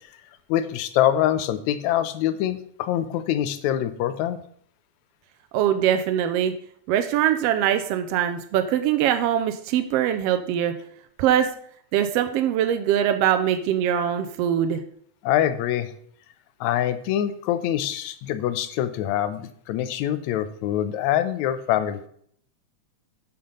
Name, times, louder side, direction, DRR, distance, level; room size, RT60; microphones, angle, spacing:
voice 1, 0.5-4.4 15.2-15.9 16.6-22.1, left 11 dB, 80° left, 12 dB, 2.0 m, -24 dB
voice 2, 5.5-6.5 6.9-10.7 11.2-11.5 11.9-14.8, right 10 dB, 80° right, 8 dB, 1.4 m, -22 dB
8.6 x 5.8 x 5.4 m, 0.62 s
omnidirectional pair, 3.3 m